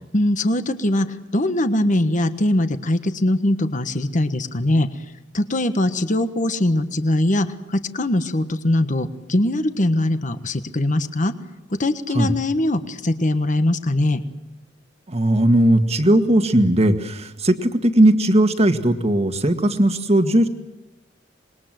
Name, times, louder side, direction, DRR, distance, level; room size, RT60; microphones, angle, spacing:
voice 1, 0.1-4.9 5.3-11.3 11.8-14.2, left 1 dB, 40° left, 10 dB, 1.4 m, -21 dB
voice 2, 15.1-20.5, right 1 dB, 35° right, 8 dB, 1.8 m, -17 dB
26.5 x 21.5 x 7.8 m, 1.0 s
head